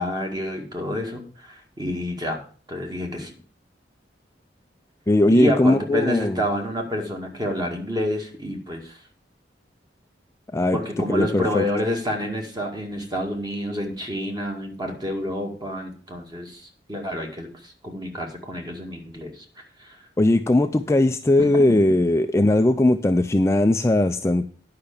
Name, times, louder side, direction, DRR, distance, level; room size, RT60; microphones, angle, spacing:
voice 1, 0.0-2.4 2.7-3.4 5.2-9.0 10.7-19.5 19.8-20.0, equal, 25° right, 2 dB, 2.2 m, -28 dB
voice 2, 5.1-6.4 10.5-10.8 11.1-11.6 20.2-24.5, left 1 dB, 15° left, 7 dB, 0.4 m, -19 dB
10.5 x 5.8 x 6.7 m, 0.42 s
head